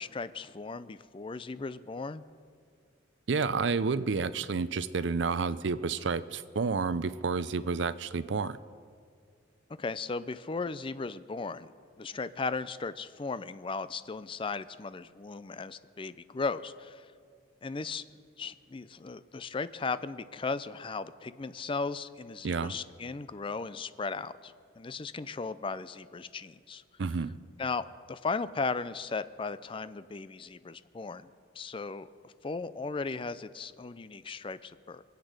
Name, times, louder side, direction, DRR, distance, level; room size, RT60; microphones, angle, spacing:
voice 1, 0.0-2.2 9.8-11.7 12.0-17.1 17.6-18.0 18.4-26.8 27.6-31.3 31.6-35.0, left 4 dB, 25° left, 14 dB, 0.4 m, -36 dB
voice 2, 3.3-8.6 22.4-22.7 27.0-27.3, right 4 dB, 70° right, 16 dB, 0.5 m, -30 dB
23.5 x 8.2 x 6.6 m, 2.1 s
head